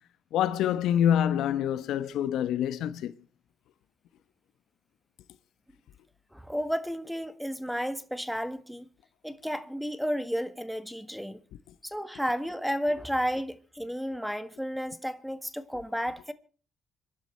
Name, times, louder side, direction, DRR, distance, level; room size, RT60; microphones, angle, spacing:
voice 1, 0.3-3.1, left 10 dB, 85° left, 1.1 m, -26 dB
voice 2, 6.3-8.9 9.2-11.4 11.8-16.3, equal, ahead, 1.5 m, -32 dB
26.0 x 12.0 x 4.5 m
cardioid pair, 90°, 0 cm